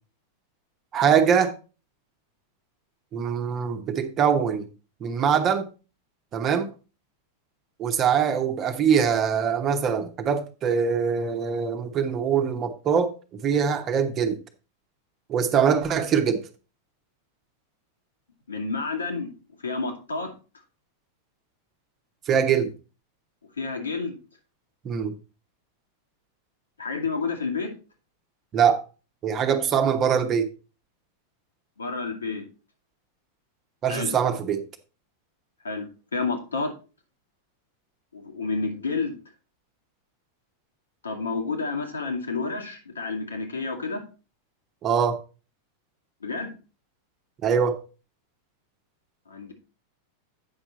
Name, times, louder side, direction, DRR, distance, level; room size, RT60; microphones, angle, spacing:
voice 1, 0.9-1.5 3.1-4.7 5.0-5.7 6.3-6.7 7.8-13.1 13.4-14.4 15.3-16.4 22.3-22.7 24.8-25.1 28.5-28.8 29.2-30.5 33.8-34.6 44.8-45.2 47.4-47.8, right 7 dB, 30° right, 1.1 m, -23 dB
voice 2, 18.5-19.3 19.6-20.3 23.6-24.2 26.8-27.7 31.8-32.4 33.9-34.2 35.6-36.7 38.1-39.2 41.0-44.0 46.2-46.5 49.3-49.5, left 4 dB, 75° left, 2.0 m, -30 dB
8.7 x 6.0 x 4.1 m
figure-of-eight pair, 90°, 0 cm